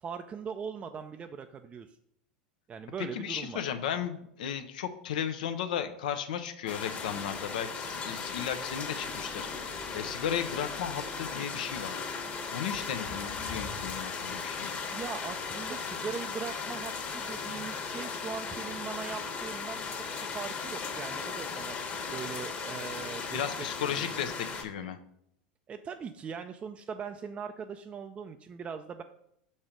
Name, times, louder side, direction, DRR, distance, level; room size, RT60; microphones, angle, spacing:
voice 1, 0.0-2.0 2.7-3.6 14.9-20.1 20.3-21.8 22.1-23.4 23.9-24.0 24.8-24.9 25.7-29.0, right 6 dB, 25° right, 7 dB, 0.4 m, -40 dB
voice 2, 3.0-9.5 9.9-12.0 12.5-14.7 23.3-25.0, left 8 dB, 75° left, 9 dB, 0.7 m, -35 dB
sound 1, 6.7-24.6, left 5 dB, 35° left, 1.3 m, -37 dB
sound 2, 8.3-11.8, left 1 dB, 10° left, 0.7 m, -48 dB
6.0 x 4.3 x 5.1 m, 0.73 s
hypercardioid pair, 90°, 5 cm